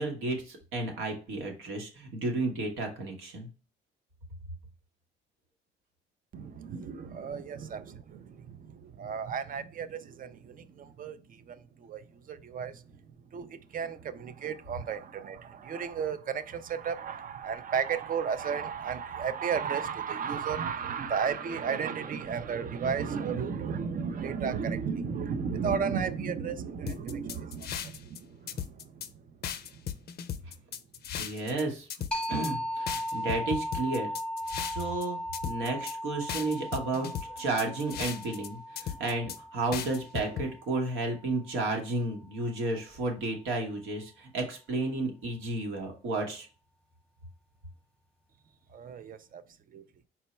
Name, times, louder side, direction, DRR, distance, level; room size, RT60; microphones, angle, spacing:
voice 1, 0.0-3.5 31.2-31.9 32.3-34.1 34.7-35.2 35.4-46.5, right 2 dB, 85° right, 1.1 m, -32 dB
voice 2, 6.3-12.8 13.3-29.2 29.7-29.8 48.7-49.4 49.7-49.8, right 6 dB, 45° right, 0.4 m, -34 dB
sound 1, 26.9-28.2 28.5-29.1 29.4-31.6 31.9-32.5 32.9-35.0 35.3-35.9 36.3-38.5 38.8-39.4 39.7-40.5, left 9 dB, 55° left, 0.4 m, -36 dB
sound 2, 32.1-41.5, equal, 5° left, 0.9 m, -37 dB
4.4 x 2.1 x 4.1 m
cardioid pair, 90°, 20 cm